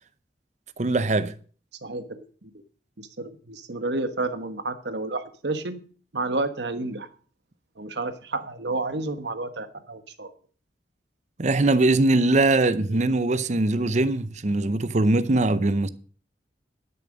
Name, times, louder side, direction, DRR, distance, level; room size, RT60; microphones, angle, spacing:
voice 1, 0.8-1.3 11.4-15.9, right 2 dB, 40° right, 0.7 m, -21 dB
voice 2, 1.8-2.2 2.5-2.6 3.0-5.8 6.1-7.1 7.8-10.3 12.9-13.0, right 2 dB, 70° right, 1.3 m, -30 dB
12.5 x 7.0 x 6.3 m
head